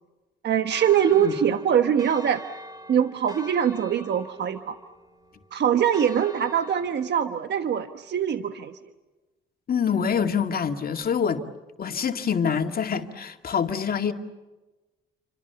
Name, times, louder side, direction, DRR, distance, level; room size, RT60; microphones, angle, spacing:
voice 1, 0.4-2.4 2.9-4.8 5.5-8.8, right 9 dB, 60° right, 1.2 m, -23 dB
Church bell, 0.7-7.2, equal, 20° right, 2.7 m, -44 dB
voice 2, 9.7-11.4 11.8-14.1, left 7 dB, 50° left, 2.2 m, -25 dB
29.5 x 25.5 x 7.0 m
cardioid pair, 90°, 20 cm